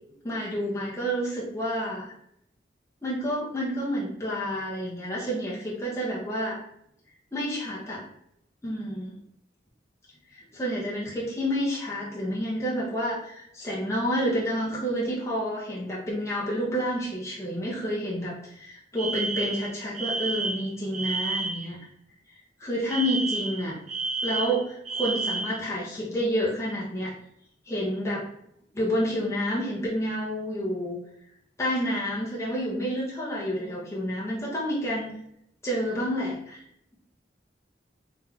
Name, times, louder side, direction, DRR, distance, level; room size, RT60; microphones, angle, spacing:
voice 1, 0.2-2.1 3.0-6.6 7.3-8.0 8.6-9.2 10.3-21.8 22.6-23.7 24.2-27.1 27.7-28.2 28.7-31.0 31.6-35.1 35.6-36.6, equal, 15° left, -6 dB, 0.9 m, -29 dB
Alarm, 19.0-21.7 22.9-25.6, right 3 dB, 40° right, 0.6 m, -30 dB
3.4 x 3.2 x 3.6 m, 0.75 s
head